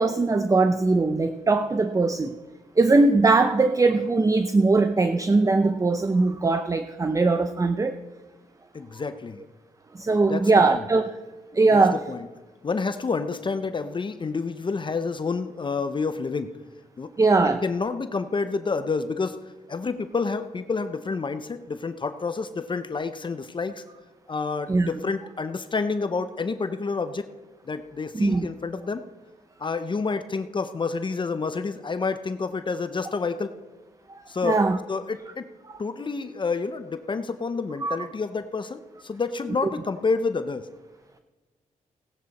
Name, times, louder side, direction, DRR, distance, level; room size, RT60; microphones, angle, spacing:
voice 1, 0.0-2.3 2.8-8.0 10.0-11.1 11.5-12.0 17.2-17.6 24.7-24.9 28.1-28.5 34.4-34.8 37.8-38.0, right 3 dB, 25° right, 9 dB, 0.6 m, -20 dB
voice 2, 8.7-9.4 10.3-10.8 11.7-11.8 12.1-12.3 12.6-16.5 17.0-17.1 17.6-19.4 19.7-23.8 24.3-27.3 27.7-29.0 29.6-33.5 34.3-35.5 35.8-40.7, left 4 dB, 35° left, 10 dB, 0.7 m, -29 dB
17.0 x 11.0 x 4.2 m, 1.2 s
cardioid pair, 80°, 14 cm